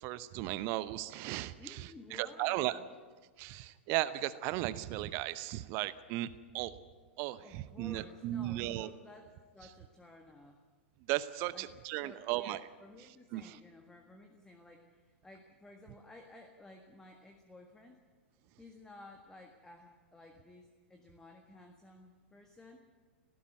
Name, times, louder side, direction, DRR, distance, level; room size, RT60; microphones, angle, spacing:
voice 1, 0.0-2.8 3.4-6.3 6.5-6.8 7.2-8.9 11.1-12.6 13.3-13.6, right 16 dB, 40° right, 15 dB, 0.8 m, -36 dB
voice 2, 1.6-2.9 7.4-10.6 11.5-18.0 18.6-22.8, left 2 dB, 10° left, 4 dB, 1.7 m, -55 dB
18.0 x 15.5 x 9.4 m, 1.4 s
figure-of-eight pair, 95°, 6 cm